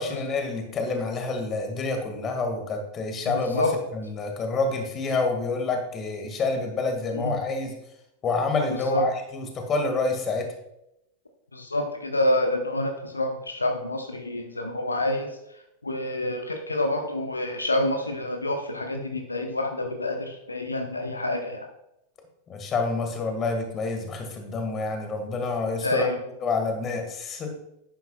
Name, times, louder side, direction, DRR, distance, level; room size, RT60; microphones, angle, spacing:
voice 1, 0.0-3.6 3.9-7.7 8.2-10.5 22.5-26.1 26.4-27.5, left 3 dB, 25° left, 4 dB, 1.9 m, -28 dB
voice 2, 3.3-3.8 7.1-7.3 8.7-9.1 11.5-15.4 15.8-21.7 25.8-26.2, left 1 dB, 80° left, 4 dB, 0.9 m, -27 dB
11.0 x 9.1 x 2.3 m, 0.84 s
figure-of-eight pair, 90°, 0 cm